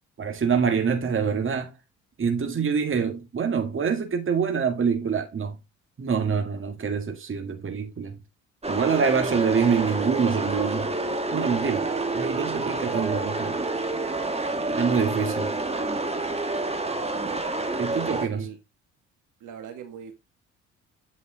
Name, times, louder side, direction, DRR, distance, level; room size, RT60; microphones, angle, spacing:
voice 1, 0.2-1.7 2.2-5.6 6.0-8.2 8.7-10.9 11.3-13.6 14.7-15.6 17.8-18.5, right 6 dB, 40° right, 1.8 m, -25 dB
sound 1, 8.6-18.3, right 2 dB, 20° right, 1.8 m, -28 dB
voice 2, 19.4-20.1, right 8 dB, 70° right, 2.0 m, -40 dB
8.6 x 5.1 x 3.8 m
supercardioid pair, 65°, 32 cm